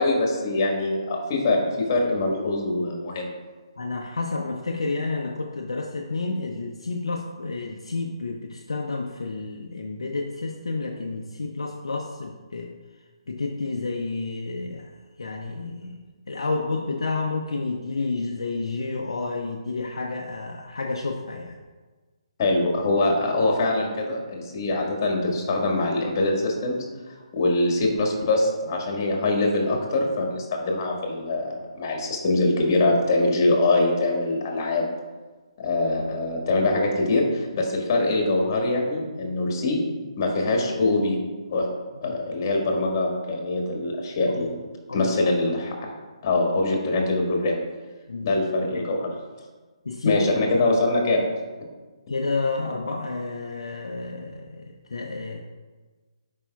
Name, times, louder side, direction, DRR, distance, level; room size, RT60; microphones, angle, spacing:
voice 1, 0.0-3.3 22.4-26.8 27.1-34.8 35.6-39.8 40.2-41.2 41.5-41.7 42.0-44.6 44.9-45.7 46.2-47.6 48.2-49.0 50.0-51.2 52.1-52.2, left 2 dB, 35° left, 0 dB, 1.6 m, -23 dB
voice 2, 3.8-12.7 13.3-14.9 15.2-16.0 16.3-21.6 42.0-42.2 44.3-44.4 44.9-45.1 48.1-48.3 48.7-48.8 49.8-50.3 50.5-50.6 52.1-55.4, left 3 dB, 65° left, 1 dB, 0.6 m, -30 dB
11.0 x 5.2 x 2.3 m, 1.3 s
figure-of-eight pair, 140°, 3 cm